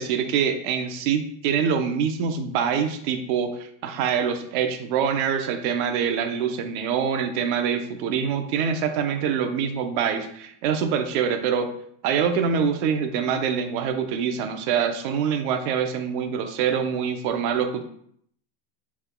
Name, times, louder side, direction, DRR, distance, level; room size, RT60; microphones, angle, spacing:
voice 1, 0.0-11.7 12.0-17.8, right 7 dB, 45° right, 6 dB, 0.7 m, -25 dB
6.7 x 3.5 x 2.2 m, 0.66 s
supercardioid pair, 155°, 35 cm